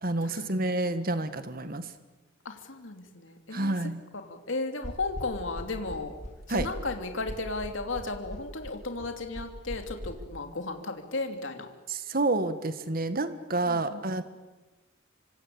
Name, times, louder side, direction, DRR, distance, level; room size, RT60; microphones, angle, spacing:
voice 1, 0.0-1.9 3.5-4.0 6.5-6.7 11.9-14.2, right 2 dB, 50° right, 10 dB, 1.7 m, -29 dB
voice 2, 2.4-3.8 4.2-6.1 6.5-11.7 13.7-14.0, left 3 dB, 85° left, 5 dB, 2.9 m, -35 dB
sound 1, 4.8-10.1, equal, 40° left, 4.9 m, -39 dB
27.0 x 24.5 x 8.8 m, 1.1 s
head